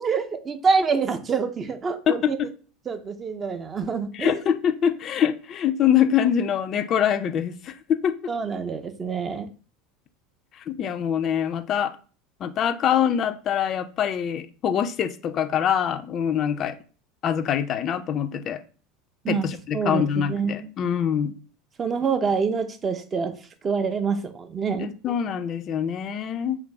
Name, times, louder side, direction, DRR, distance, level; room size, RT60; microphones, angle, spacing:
voice 1, 0.0-2.4 2.9-4.4 8.3-9.5 19.2-20.7 21.8-23.4 23.6-24.9, right 5 dB, 30° right, 0.5 m, -26 dB
voice 2, 2.1-2.5 4.1-8.1 10.5-11.9 12.4-16.8 17.2-18.6 19.3-21.3 24.8-26.6, left 9 dB, 40° left, 0.3 m, -24 dB
3.1 x 2.4 x 3.2 m
figure-of-eight pair, 75°, 0 cm